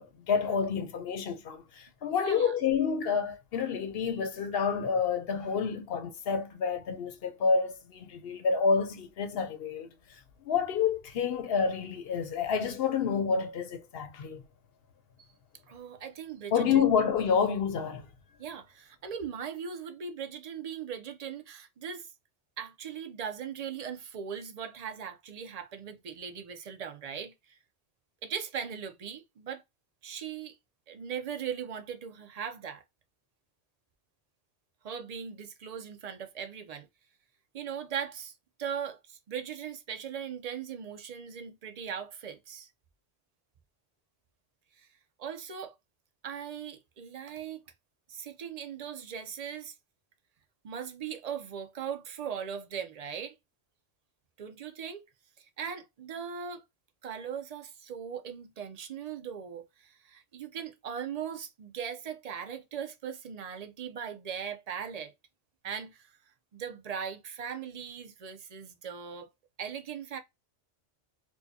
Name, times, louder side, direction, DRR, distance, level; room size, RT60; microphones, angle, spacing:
voice 1, 0.0-9.9 10.4-14.4 16.5-18.1, left 6 dB, 65° left, 0.8 m, -29 dB
voice 2, 2.1-2.5 15.7-16.9 18.4-22.1 22.6-27.6 28.2-29.6 30.0-30.6 30.9-32.8 34.8-36.9 37.5-38.3 38.6-42.7 45.2-45.7 46.2-47.6 48.1-49.7 50.6-53.3 54.4-55.0 55.4-56.6 57.0-65.1 65.6-66.1 66.5-69.3 69.6-70.2, right 7 dB, 45° right, 0.5 m, -39 dB
4.6 x 2.2 x 2.7 m
omnidirectional pair, 1.2 m